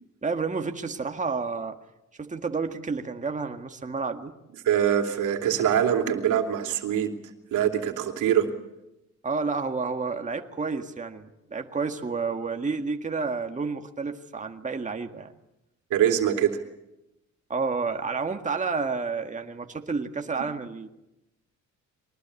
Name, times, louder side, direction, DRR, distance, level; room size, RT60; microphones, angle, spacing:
voice 1, 0.2-1.8 2.2-4.3 9.2-15.3 17.5-20.9, right 4 dB, 25° right, 5 dB, 1.8 m, -30 dB
voice 2, 4.6-7.1 7.5-8.5 15.9-16.6, right 9 dB, 85° right, 5 dB, 3.0 m, -23 dB
23.0 x 19.5 x 8.4 m, 0.89 s
cardioid pair, 90°, 30 cm